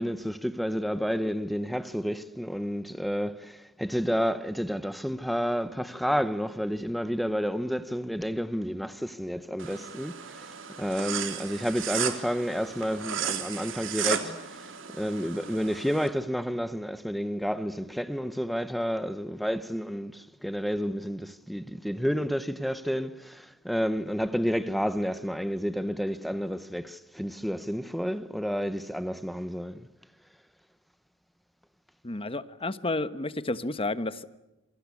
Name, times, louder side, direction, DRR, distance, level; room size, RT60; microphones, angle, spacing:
voice 1, 0.0-10.5 10.8-14.6 15.0-29.8, equal, ahead, 1.0 m, -30 dB
sound 1, 9.6-16.1, right 8 dB, 75° right, 3.2 m, -35 dB
voice 2, 32.0-34.3, left 2 dB, 30° left, 1.3 m, -31 dB
27.5 x 24.0 x 8.5 m
head